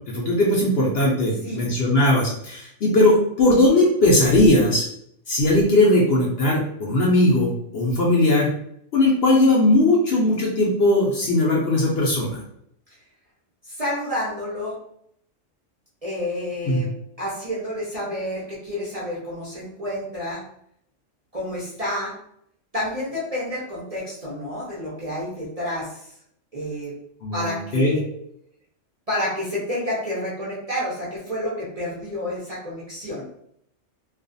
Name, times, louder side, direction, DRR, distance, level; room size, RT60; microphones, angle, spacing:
voice 1, 0.1-4.8 5.3-8.5 8.9-12.4 16.7-16.8 27.2-27.9, left 1 dB, 60° left, -3 dB, 0.7 m, -19 dB
voice 2, 13.6-14.8 16.0-16.9 17.2-20.4 21.3-22.1 22.7-26.1 26.5-26.9 27.3-28.2 29.1-33.3, left 1 dB, 40° right, -8 dB, 0.5 m, -29 dB
2.4 x 2.3 x 2.6 m, 0.71 s
omnidirectional pair, 1.3 m